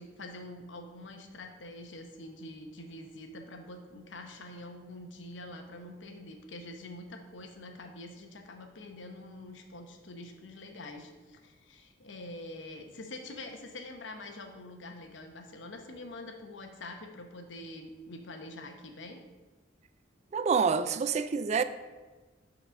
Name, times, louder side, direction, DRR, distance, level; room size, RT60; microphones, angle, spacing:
voice 1, 0.0-19.2, left 2 dB, 70° left, 0.9 m, -45 dB
voice 2, 20.3-21.6, right 5 dB, 35° right, 0.3 m, -27 dB
5.7 x 4.1 x 6.2 m
head